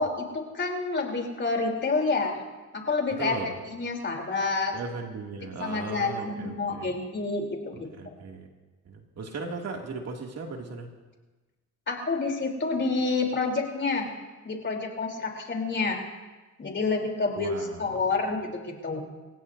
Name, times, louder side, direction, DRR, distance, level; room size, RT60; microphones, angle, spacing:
voice 1, 0.0-2.4 2.7-3.4 3.6-4.8 5.6-7.9 11.9-14.1 14.4-16.0 16.6-17.5 17.8-19.0, left 3 dB, 40° left, 1 dB, 3.6 m, -28 dB
voice 2, 3.1-3.5 4.7-6.9 8.0-8.5 8.9-10.9 17.4-17.8, right 4 dB, 55° right, 1 dB, 2.5 m, -37 dB
28.0 x 16.0 x 2.7 m, 1.2 s
cardioid pair, 90°, 30 cm